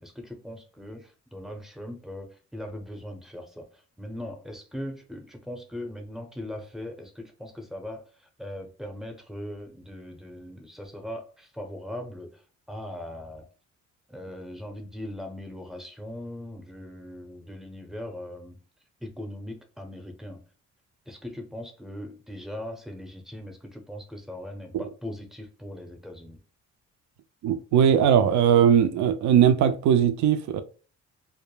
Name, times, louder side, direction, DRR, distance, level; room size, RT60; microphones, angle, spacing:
voice 1, 0.0-3.7 4.0-8.0 8.4-12.4 12.7-13.5 14.1-18.6 19.0-20.4 21.1-26.4, left 1 dB, ahead, 0.6 m, -39 dB
voice 2, 27.4-30.6, right 8 dB, 70° right, 0.5 m, -20 dB
2.1 x 2.1 x 3.1 m
cardioid pair, 90°, 30 cm